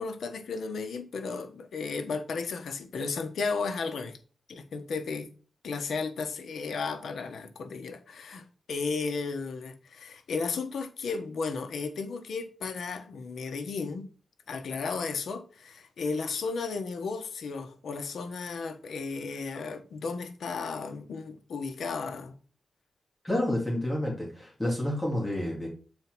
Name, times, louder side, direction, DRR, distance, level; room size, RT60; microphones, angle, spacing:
voice 1, 0.0-4.2 4.5-5.3 5.6-14.0 14.5-22.3, left 4 dB, 80° left, 1.2 m, -34 dB
voice 2, 23.2-25.7, left 1 dB, 10° left, 2.6 m, -29 dB
7.8 x 4.4 x 6.0 m
wide cardioid pair, 120°, 0 cm